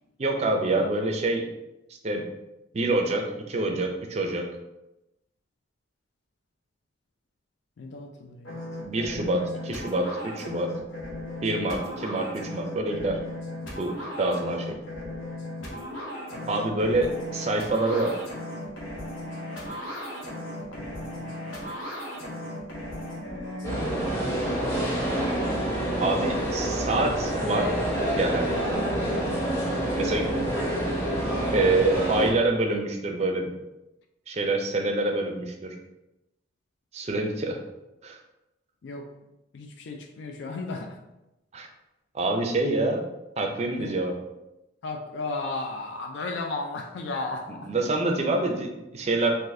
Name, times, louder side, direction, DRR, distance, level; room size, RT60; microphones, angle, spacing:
voice 1, 0.2-1.4 2.0-2.2 2.7-4.5 8.9-10.7 11.4-13.2 13.8-14.8 16.5-18.2 26.0-27.7 28.1-28.5 29.9-30.3 31.5-33.5 34.3-35.7 36.9-37.6 38.0-38.2 41.5-41.7 42.1-43.0 43.4-44.2 47.6-49.3, right 2 dB, 35° right, 2 dB, 0.4 m, -26 dB
voice 2, 7.8-8.6 16.3-16.5 20.7-21.3 23.9-25.1 30.3-30.6 38.8-39.0 39.5-41.0 43.8-43.9 44.8-47.7, left 3 dB, 65° left, 4 dB, 0.4 m, -35 dB
sound 1, 8.5-24.1, left 1 dB, 90° left, 0.9 m, -36 dB
sound 2, 23.6-32.3, right 1 dB, 15° left, 0.9 m, -27 dB
4.0 x 2.6 x 2.6 m, 0.94 s
head